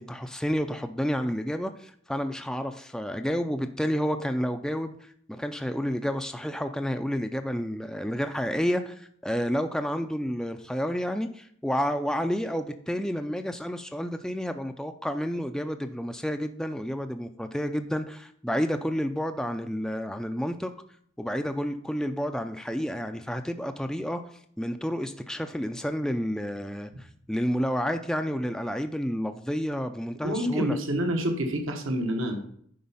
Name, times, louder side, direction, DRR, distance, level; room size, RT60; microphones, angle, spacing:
voice 1, 0.0-20.7 21.2-24.2 24.6-30.8, equal, 5° left, 7 dB, 0.4 m, -30 dB
voice 2, 30.2-32.4, equal, 70° right, 4 dB, 1.2 m, -27 dB
10.5 x 4.3 x 5.6 m, 0.64 s
head